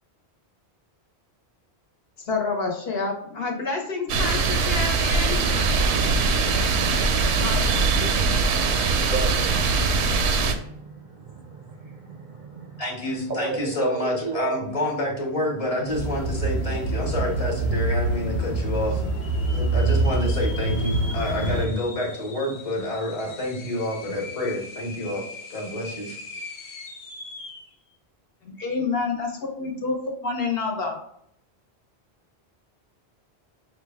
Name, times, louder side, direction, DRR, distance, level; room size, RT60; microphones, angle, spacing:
voice 1, 2.2-5.4 7.4-8.0 28.4-30.0 30.2-31.0, left 4 dB, 65° left, 0 dB, 1.1 m, -28 dB
sound 1, 4.1-10.5, right 4 dB, 85° right, 0.8 m, -22 dB
voice 2, 8.9-14.7 17.7-18.0, right 4 dB, 60° right, 3 dB, 0.6 m, -34 dB
voice 3, 12.8-19.0 19.5-25.2 25.5-26.2, left 1 dB, 35° left, -1 dB, 1.0 m, -28 dB
sound 2, 15.9-21.7, right 2 dB, 15° left, 0.6 m, -25 dB
sound 3, 16.8-16.9 17.1-17.7 18.2-18.3 19.0-27.7, left 3 dB, 90° left, 1.0 m, -41 dB
5.8 x 2.2 x 3.4 m, 0.72 s
omnidirectional pair, 1.1 m